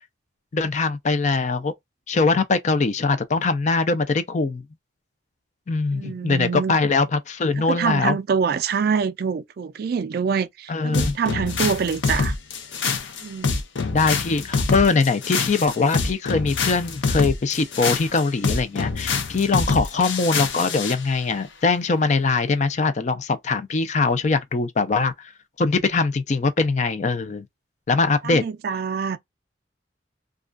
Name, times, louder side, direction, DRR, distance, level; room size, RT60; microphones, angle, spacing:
voice 1, 0.5-1.7 2.1-4.6 5.7-8.2 10.7-11.2 13.9-25.3 25.6-27.5 27.9-28.4, left 4 dB, 40° left, 0.4 m, -22 dB
voice 2, 5.9-6.9 7.6-12.3 13.2-13.6 28.2-29.2, right 6 dB, 55° right, 0.3 m, -25 dB
sound 1, 10.9-21.0, left 4 dB, 85° left, 0.6 m, -25 dB
2.4 x 2.2 x 2.3 m
head